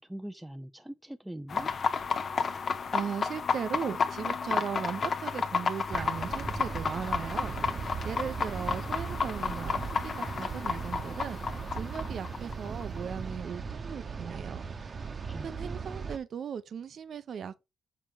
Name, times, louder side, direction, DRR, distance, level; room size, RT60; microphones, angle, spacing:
voice 1, 0.0-1.7 15.2-15.7, right 1 dB, 5° right, 0.5 m, -42 dB
sound 1, 1.5-13.0, left 5 dB, 45° left, 0.9 m, -32 dB
voice 2, 2.9-7.5 8.0-11.4 11.7-14.7 15.4-17.6, right 7 dB, 55° right, 0.7 m, -37 dB
sound 2, 5.9-16.2, right 5 dB, 40° right, 1.0 m, -38 dB
7.3 x 4.4 x 5.0 m
cardioid pair, 90°, 0 cm